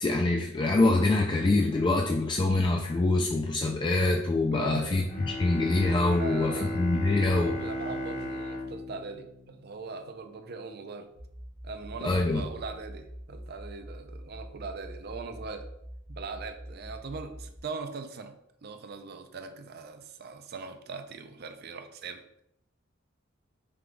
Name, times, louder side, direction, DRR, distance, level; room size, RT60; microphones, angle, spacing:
voice 1, 0.0-7.6 12.0-12.4, left 2 dB, 25° left, 1 dB, 0.3 m, -25 dB
voice 2, 4.5-5.1 6.1-6.8 7.3-11.1 11.6-15.7 16.1-18.3 18.6-22.4, right 4 dB, 55° right, 7 dB, 0.5 m, -40 dB
Bowed string instrument, 5.1-10.0, left 1 dB, 40° left, 0.8 m, -36 dB
sound 1, 11.1-17.6, equal, 75° left, 1.4 m, -45 dB
4.7 x 2.3 x 3.8 m, 0.76 s
head